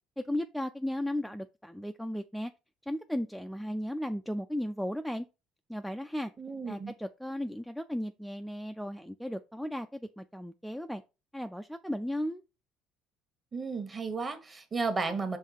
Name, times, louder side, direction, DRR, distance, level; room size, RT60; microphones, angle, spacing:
voice 1, 0.3-2.5 2.8-5.3 5.7-6.3 6.7-11.0 11.3-12.4, left 1 dB, ahead, 0.3 m, -35 dB
voice 2, 6.4-6.9 13.5-15.4, right 4 dB, 25° right, 1.2 m, -33 dB
5.5 x 3.0 x 5.5 m
cardioid pair, 135°, 0 cm